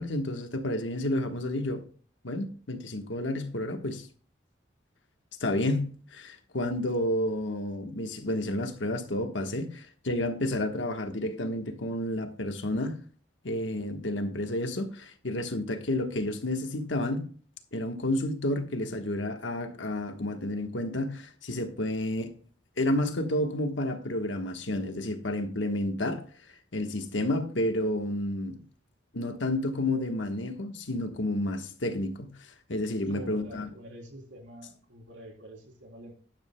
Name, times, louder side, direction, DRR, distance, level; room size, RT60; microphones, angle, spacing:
voice 1, 0.0-1.8 2.2-4.1 5.4-13.0 13.4-17.3 17.7-22.3 22.8-26.2 26.7-28.6 29.1-32.3 32.7-33.7, left 1 dB, 90° left, 1.3 m, -30 dB
voice 2, 33.1-36.2, right 1 dB, 90° right, 3.5 m, -47 dB
12.5 x 10.5 x 2.2 m
head